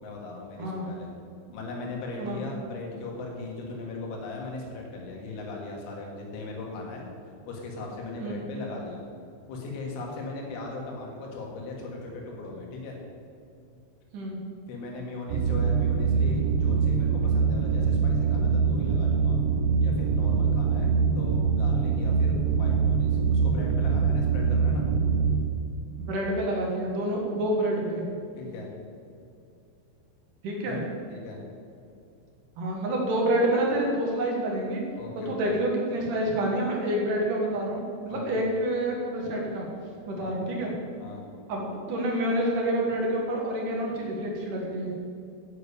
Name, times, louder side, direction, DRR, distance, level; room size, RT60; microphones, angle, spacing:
voice 1, 0.0-1.1 1.5-7.0 7.5-9.0 9.5-13.0 14.7-19.4 19.8-24.9 28.4-28.7 30.7-30.8 31.1-31.4 35.0-35.6 38.1-38.5 40.2-40.4 41.0-41.2, left 3 dB, 80° left, -1 dB, 4.2 m, -38 dB
sound 1, 15.3-25.3, right 5 dB, 80° right, 3.5 m, -24 dB
voice 2, 26.0-28.0 30.4-30.8 32.6-34.8 35.1-39.6 40.1-40.7 41.5-44.9, right 1 dB, 60° right, -1 dB, 2.3 m, -28 dB
9.2 x 6.8 x 8.5 m, 2.5 s
omnidirectional pair, 5.5 m